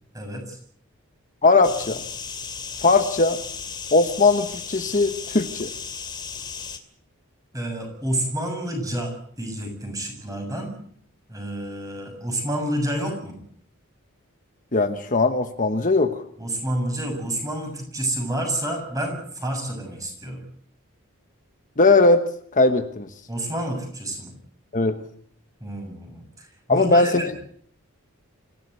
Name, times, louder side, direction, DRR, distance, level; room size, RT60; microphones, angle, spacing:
voice 1, 0.1-0.6 7.5-10.8 11.3-13.4 16.4-20.4 23.3-24.3 25.6-27.3, right 1 dB, 15° right, 4 dB, 7.3 m, -29 dB
voice 2, 1.4-2.0 2.8-3.4 3.9-5.7 14.7-16.2 21.8-22.2 22.5-23.1 24.7-25.0 26.7-27.3, left 3 dB, 35° left, 8 dB, 1.2 m, -19 dB
sound 1, 1.6-6.8, left 6 dB, 20° left, 2.5 m, -35 dB
25.5 x 16.5 x 8.1 m, 0.62 s
head